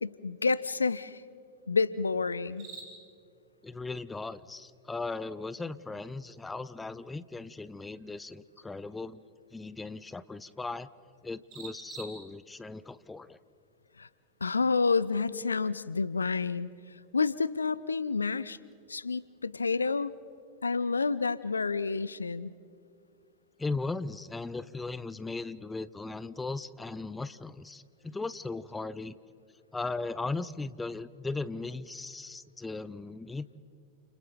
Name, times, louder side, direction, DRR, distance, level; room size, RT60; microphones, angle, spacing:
voice 1, 0.0-1.2 1.7-2.7 14.0-14.1 14.4-16.7 17.1-18.6 18.9-20.1 20.6-22.5, left 4 dB, 75° left, 19 dB, 0.5 m, -29 dB
sound 1, 2.0-20.5, right 3 dB, 40° right, 6.6 m, -56 dB
voice 2, 3.6-9.2 9.5-10.9 11.2-13.4 23.6-29.2 29.7-33.6, left 3 dB, 10° left, 16 dB, 0.6 m, -37 dB
30.0 x 29.0 x 3.9 m, 2.3 s
figure-of-eight pair, 90°, 0 cm